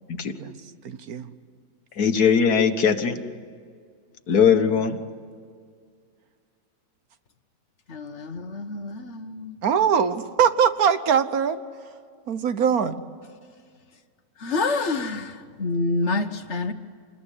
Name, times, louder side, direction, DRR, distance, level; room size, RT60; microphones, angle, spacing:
voice 1, 0.8-1.3 9.6-11.6 12.3-13.0, right 7 dB, 65° right, 11 dB, 1.4 m, -22 dB
voice 2, 2.0-3.2 4.3-5.0, left 7 dB, 70° left, 8 dB, 1.9 m, -20 dB
voice 3, 7.9-9.5 14.4-16.7, left 3 dB, 50° left, 8 dB, 1.4 m, -27 dB
27.0 x 21.5 x 10.0 m, 2.1 s
omnidirectional pair, 1.7 m